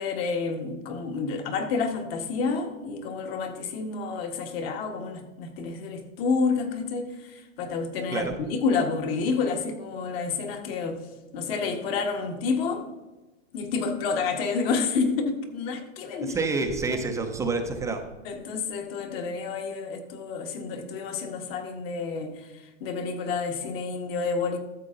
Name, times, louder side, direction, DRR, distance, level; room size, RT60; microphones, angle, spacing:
voice 1, 0.0-11.0 11.3-12.8 13.5-16.4 18.3-24.6, left 4 dB, 45° left, 5 dB, 1.7 m, -29 dB
voice 2, 16.2-18.1, right 3 dB, 10° right, 4 dB, 0.5 m, -28 dB
13.0 x 7.4 x 3.8 m, 1.1 s
hypercardioid pair, 140°, 40 cm